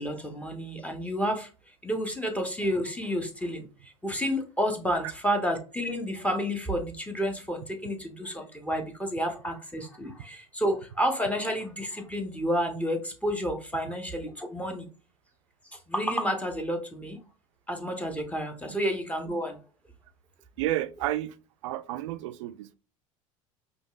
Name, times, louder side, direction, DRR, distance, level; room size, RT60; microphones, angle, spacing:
voice 1, 0.0-1.5 1.8-14.9 15.9-17.2 17.7-19.6, equal, 10° left, 0.8 m, -30 dB
voice 2, 20.6-21.4 21.6-22.8, right 14 dB, 65° right, 0.4 m, -31 dB
5.2 x 2.3 x 2.4 m
figure-of-eight pair, 70°, 17 cm